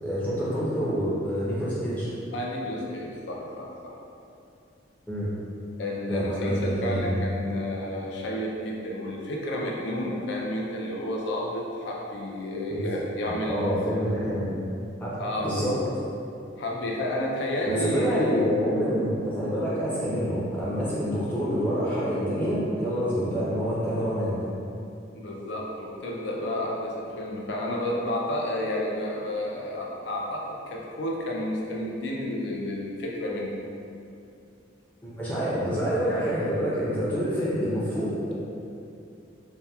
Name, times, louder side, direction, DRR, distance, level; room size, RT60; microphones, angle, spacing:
voice 1, 0.0-2.1 5.1-5.3 6.1-7.0 12.7-12.8 13.2-14.5 15.0-15.2 15.4-15.8 17.7-24.4 35.0-38.3, equal, 10° left, -10 dB, 0.5 m, -27 dB
voice 2, 2.3-3.9 5.8-14.0 15.2-15.7 16.6-18.3 25.1-33.5, left 1 dB, 65° left, -2 dB, 0.4 m, -31 dB
2.8 x 2.2 x 2.3 m, 2.6 s
head